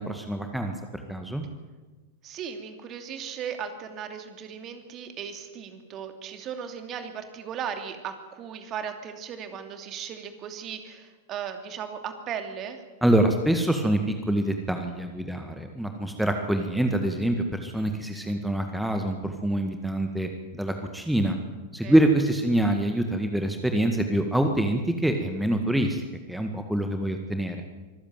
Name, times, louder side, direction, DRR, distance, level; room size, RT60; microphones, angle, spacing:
voice 1, 0.0-1.4 13.0-21.4 21.7-27.6, right 1 dB, ahead, 5 dB, 1.9 m, -25 dB
voice 2, 2.2-12.8 21.8-22.0, right 8 dB, 35° right, 7 dB, 2.8 m, -37 dB
25.0 x 14.5 x 9.2 m, 1.2 s
figure-of-eight pair, 90°, 0 cm